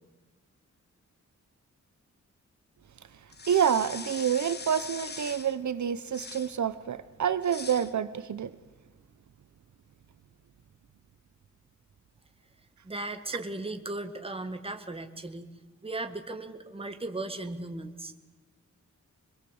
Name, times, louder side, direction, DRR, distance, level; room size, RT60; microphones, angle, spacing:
sound 1, 3.3-5.6 6.1-6.6 7.4-7.9, left 4 dB, 35° left, 1.1 m, -41 dB
voice 1, 3.5-8.5, right 8 dB, 70° right, 13 dB, 1.0 m, -28 dB
voice 2, 12.8-15.5 15.8-18.1, right 2 dB, 20° right, 7 dB, 1.8 m, -37 dB
26.0 x 22.0 x 8.1 m, 1.2 s
wide cardioid pair, 160°, 30 cm